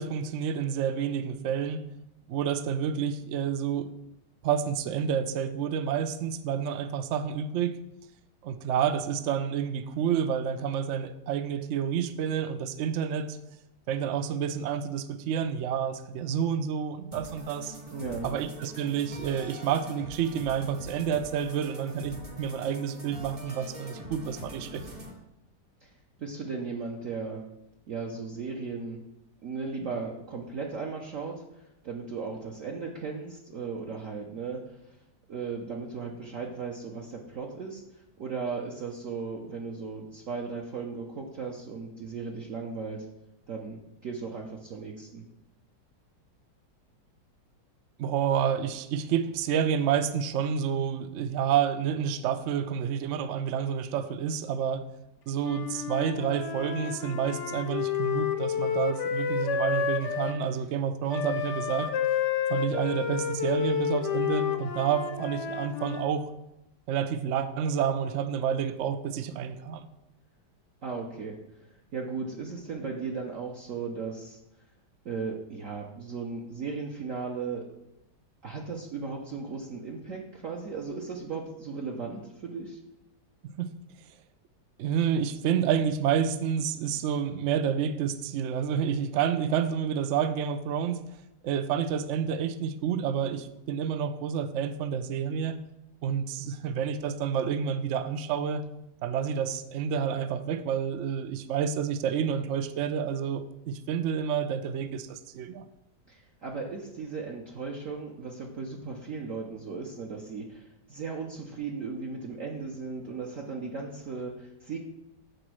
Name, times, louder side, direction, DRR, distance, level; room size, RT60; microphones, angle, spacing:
voice 1, 0.0-1.8 2.3-3.9 4.4-7.8 8.4-13.4 13.9-17.7 18.2-24.8 48.0-54.8 55.3-61.9 62.5-66.3 66.9-69.9 83.6-83.7 84.8-91.0 91.4-95.6 96.0-98.6 99.0-105.6, right 8 dB, 85° right, 11 dB, 0.6 m, -29 dB
sound 1, 17.1-25.1, equal, 25° right, 0.8 m, -44 dB
voice 2, 17.9-18.3 25.8-25.9 26.2-27.4 27.9-29.0 29.4-34.6 34.9-35.0 35.3-43.1 43.5-45.2 70.8-71.4 71.9-74.4 75.0-77.7 78.4-82.8 106.1-114.8, right 4 dB, 55° right, -1 dB, 1.0 m, -36 dB
Wind instrument woodwind instrument, 55.4-60.4 61.1-66.1, left 7 dB, 60° left, 0.8 m, -30 dB
7.9 x 4.3 x 6.2 m, 0.89 s
omnidirectional pair, 2.0 m